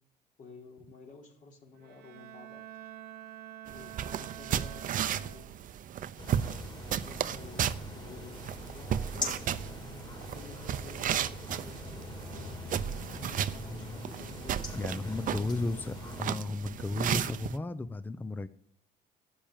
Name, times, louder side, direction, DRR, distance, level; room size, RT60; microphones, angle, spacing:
voice 1, 0.4-2.9 3.7-5.5 6.3-12.1 12.3-14.7 15.3-16.1, left 3 dB, 50° left, -1 dB, 3.4 m, -52 dB
Bowed string instrument, 1.7-5.8, right 12 dB, 75° right, 1.0 m, -47 dB
sound 1, 3.7-17.6, right 9 dB, 50° right, 0.7 m, -35 dB
sound 2, 6.2-16.2, left 2 dB, 25° left, 3.7 m, -42 dB
voice 2, 14.7-15.9 16.2-18.5, left 2 dB, 10° left, 13 dB, 0.6 m, -34 dB
12.5 x 8.9 x 8.9 m, 0.68 s
cardioid pair, 110°, 17 cm